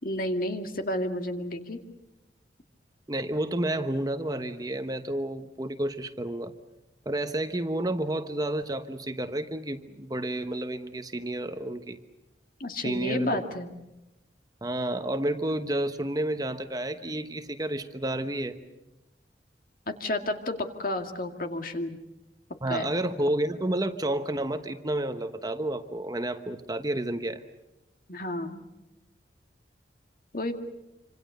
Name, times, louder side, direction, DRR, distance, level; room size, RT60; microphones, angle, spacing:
voice 1, 0.0-1.8 12.6-13.7 20.0-22.0 22.7-22.9 28.1-28.6 30.3-30.5, left 1 dB, 50° left, 6 dB, 2.2 m, -31 dB
voice 2, 3.1-6.5 7.0-12.0 12.8-13.4 14.6-18.6 22.6-27.4, right 1 dB, 20° right, 8 dB, 1.1 m, -30 dB
27.0 x 26.0 x 6.7 m, 0.98 s
head